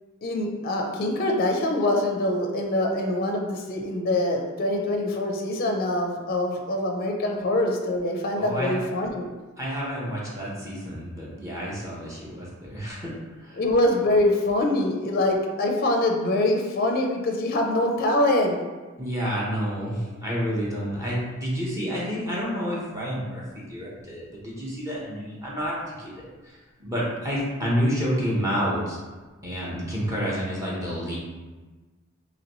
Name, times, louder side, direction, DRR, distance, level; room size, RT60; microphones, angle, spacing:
voice 1, 0.2-9.3 13.6-18.6, left 1 dB, 45° left, 2 dB, 0.5 m, -24 dB
voice 2, 8.4-8.8 9.6-13.6 19.0-29.0 29.4-31.2, equal, 15° right, -6 dB, 0.8 m, -29 dB
3.9 x 3.0 x 3.0 m, 1.3 s
head